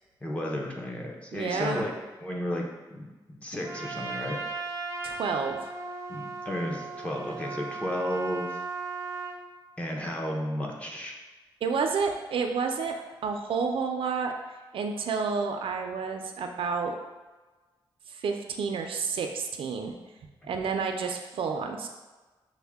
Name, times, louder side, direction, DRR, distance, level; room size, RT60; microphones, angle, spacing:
voice 1, 0.2-1.9 2.2-4.4 6.1-8.6 9.8-11.2 20.4-20.5, left 1 dB, 15° left, -1 dB, 0.6 m, -33 dB
voice 2, 1.3-1.8 5.0-5.7 11.6-12.9 13.2-14.3 14.7-16.9 18.1-19.9 20.4-21.9, right 5 dB, 80° right, 4 dB, 0.5 m, -30 dB
Trumpet, 3.6-9.4, right 4 dB, 30° right, 0.6 m, -36 dB
6.2 x 2.1 x 3.4 m, 1.2 s
wide cardioid pair, 140°, 9 cm